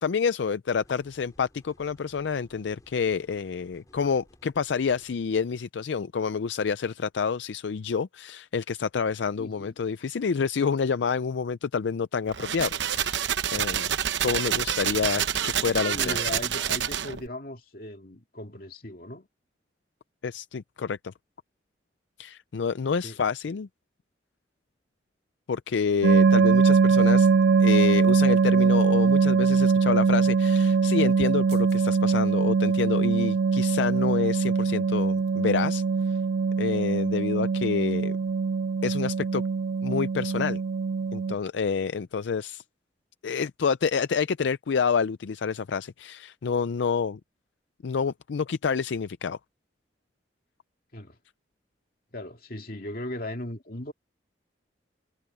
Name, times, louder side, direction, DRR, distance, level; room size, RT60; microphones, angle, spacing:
voice 1, 0.0-13.9 14.2-16.3 20.2-21.1 22.2-23.7 25.5-27.3 27.6-36.2 36.6-38.2 38.8-39.4 39.8-40.6 41.1-42.6 43.2-47.2 47.8-49.4, left 5 dB, 75° left, 0.4 m, -28 dB
sound 1, 0.7-5.1, equal, 20° left, 6.4 m, -58 dB
voice 2, 9.4-9.7 14.2-14.4 15.9-19.3 23.0-23.2 50.9-51.2 52.1-53.9, left 1 dB, 50° left, 2.4 m, -38 dB
sound 2, 12.3-17.3, right 9 dB, 80° right, 0.8 m, -28 dB
sound 3, 26.0-41.3, right 5 dB, 55° right, 0.3 m, -22 dB
head